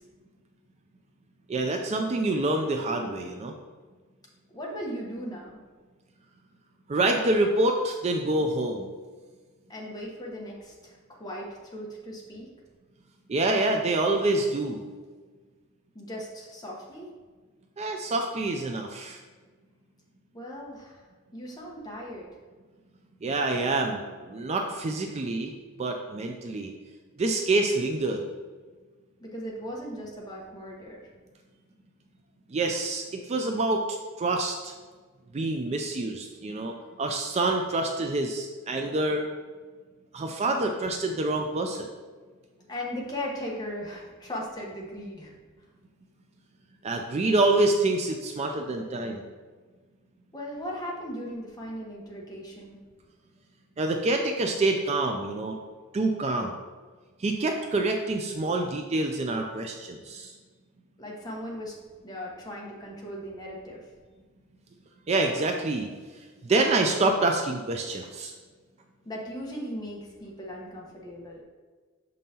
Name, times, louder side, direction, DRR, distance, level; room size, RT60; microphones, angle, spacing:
voice 1, 1.5-3.5 6.9-8.9 13.3-14.8 17.8-19.2 23.2-25.5 25.8-26.7 27.2-28.2 32.5-34.7 35.3-39.2 40.1-41.9 46.8-49.2 53.8-55.6 55.9-56.5 57.2-60.3 65.1-65.9 66.4-68.3, right 2 dB, 30° right, 3 dB, 0.4 m, -26 dB
voice 2, 4.5-5.6 9.7-12.5 15.9-17.1 20.3-22.3 29.2-31.1 42.7-45.3 50.3-52.8 61.0-61.8 62.0-63.9 69.0-71.4, equal, 20° left, -3 dB, 1.0 m, -38 dB
6.3 x 5.3 x 2.8 m, 1.4 s
head